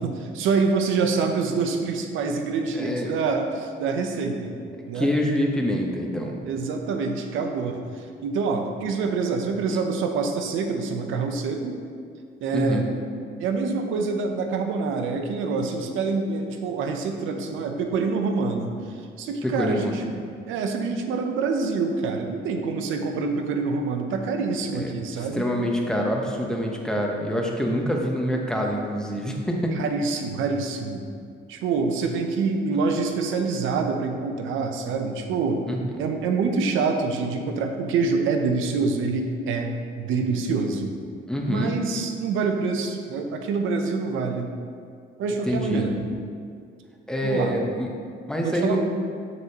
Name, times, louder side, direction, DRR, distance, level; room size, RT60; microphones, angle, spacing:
voice 1, 0.0-4.5 4.9-5.1 6.4-11.8 12.4-12.9 13.4-20.0 20.4-25.5 29.8-31.0 31.5-35.6 36.0-40.9 41.5-44.5 45.2-46.0 47.2-47.6 48.4-48.8, right 4 dB, 85° right, 4 dB, 0.7 m, -26 dB
voice 2, 2.7-3.1 4.9-6.4 12.5-12.9 19.4-20.0 24.7-24.9 25.2-29.8 35.7-35.8 41.3-41.8 45.5-45.9 47.1-47.9 48.3-48.8, equal, 5° left, 0 dB, 1.0 m, -26 dB
7.5 x 6.3 x 2.9 m, 2.2 s
cardioid pair, 90°, 20 cm